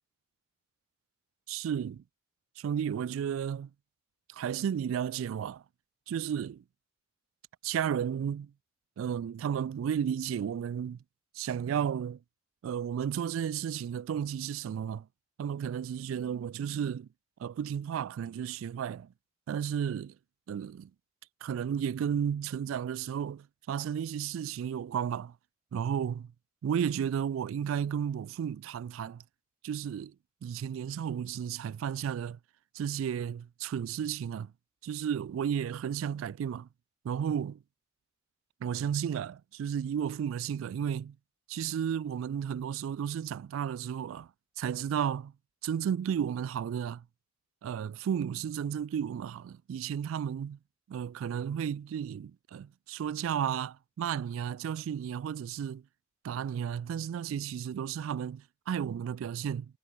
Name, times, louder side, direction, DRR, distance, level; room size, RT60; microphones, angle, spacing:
voice 1, 1.5-2.0 2.6-3.7 4.3-5.6 6.1-6.6 7.6-8.5 9.0-11.0 11.4-12.2 12.6-15.1 15.4-17.1 17.4-19.1 19.5-20.1 20.5-20.9 21.4-25.3 25.7-26.3 26.6-29.2 29.6-30.1 30.4-32.4 32.7-34.5 34.8-36.7 37.0-37.6 38.6-41.2 41.5-44.3 44.6-45.3 45.6-47.0 47.6-50.6 50.9-55.8 56.2-59.7, right 8 dB, 80° right, 0.3 m, -33 dB
head